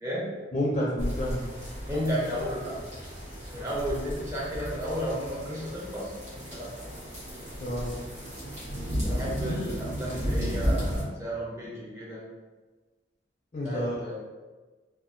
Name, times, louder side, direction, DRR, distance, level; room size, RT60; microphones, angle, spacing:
voice 1, 0.0-0.4 1.9-2.8 3.5-6.8 9.0-12.3 13.6-14.1, equal, 15° right, -6 dB, 0.6 m, -33 dB
voice 2, 0.5-1.5 7.6-7.9 13.5-14.1, left 1 dB, 35° left, -5 dB, 0.4 m, -29 dB
sound 1, 1.0-11.0, equal, 45° right, 0.9 m, -34 dB
2.7 x 2.3 x 2.5 m, 1.3 s
head